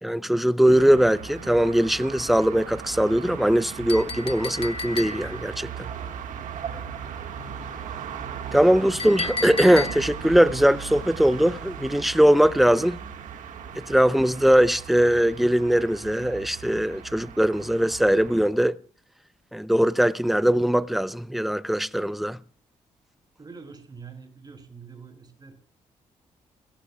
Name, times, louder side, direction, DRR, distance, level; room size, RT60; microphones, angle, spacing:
voice 1, 0.0-5.9 8.5-13.0 13.8-18.8 19.5-22.4, equal, ahead, 0.6 m, -21 dB
sound 1, 0.6-18.5, right 7 dB, 80° right, 1.7 m, -38 dB
Chink clink, 3.9-5.5 9.0-10.3, left 4 dB, 45° left, 1.1 m, -33 dB
voice 2, 23.4-25.5, right 5 dB, 30° right, 5.4 m, -45 dB
30.0 x 14.5 x 2.3 m
cardioid pair, 80°, 13 cm